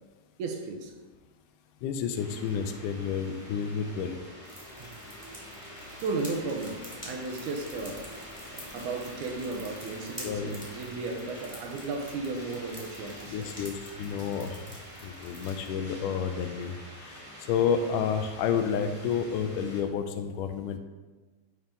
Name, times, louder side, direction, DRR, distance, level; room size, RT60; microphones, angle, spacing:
voice 1, 0.4-0.9 4.8-4.9 6.0-8.1 8.5-13.5, right 3 dB, 75° right, 2 dB, 2.1 m, -35 dB
voice 2, 1.8-4.2 10.2-10.6 13.3-14.6 15.0-17.2 17.5-20.8, left 7 dB, 85° left, 7 dB, 2.1 m, -30 dB
sound 1, 2.1-19.8, equal, 15° left, 0.5 m, -46 dB
sound 2, 4.4-15.7, equal, 10° right, 1.4 m, -48 dB
10.5 x 3.6 x 3.8 m, 1.3 s
omnidirectional pair, 3.7 m